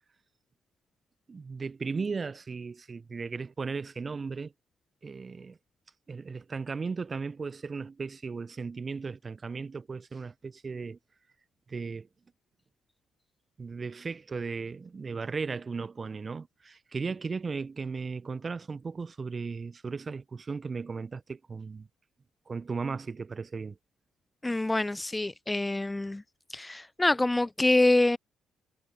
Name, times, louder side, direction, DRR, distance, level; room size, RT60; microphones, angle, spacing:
voice 1, 1.3-4.5 5.0-5.6 6.1-11.0 11.7-12.1 13.6-21.9 22.5-23.8, right 4 dB, 35° right, 1.2 m, -36 dB
voice 2, 24.4-26.2 26.5-28.2, left 2 dB, 15° left, 0.3 m, -26 dB
figure-of-eight pair, 40°, 0 cm